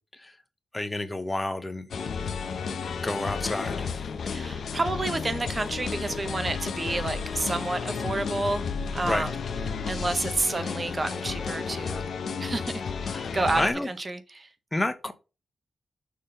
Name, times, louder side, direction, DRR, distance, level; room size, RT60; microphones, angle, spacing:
voice 1, 0.7-1.9 3.0-4.0 9.0-9.2 13.1-13.9 14.7-15.1, left 2 dB, 15° left, 0.8 m, -29 dB
sound 1, 1.9-13.7, left 5 dB, 60° left, 0.8 m, -32 dB
voice 2, 4.3-8.7 8.9-9.4 9.8-12.1 12.4-14.5, right 2 dB, 20° right, 0.7 m, -30 dB
6.7 x 3.6 x 5.1 m
wide cardioid pair, 175°, 0 cm